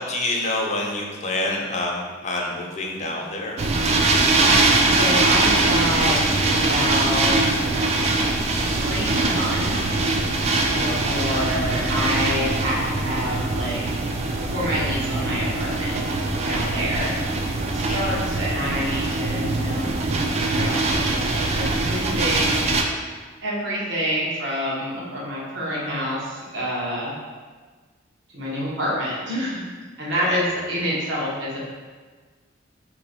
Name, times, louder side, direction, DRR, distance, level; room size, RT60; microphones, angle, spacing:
voice 1, 0.0-3.6 17.8-18.1 30.1-30.4, left 2 dB, 35° left, -1 dB, 0.6 m, -27 dB
sound 1, 3.6-22.8, right 2 dB, 35° right, 0.3 m, -22 dB
voice 2, 4.8-7.6 8.7-10.0 10.3-14.0 14.3-16.0 16.4-20.0 20.4-23.1 23.4-27.1 28.3-29.6 30.0-31.6, equal, 70° right, -6 dB, 1.1 m, -28 dB
2.9 x 2.8 x 4.1 m, 1.4 s
head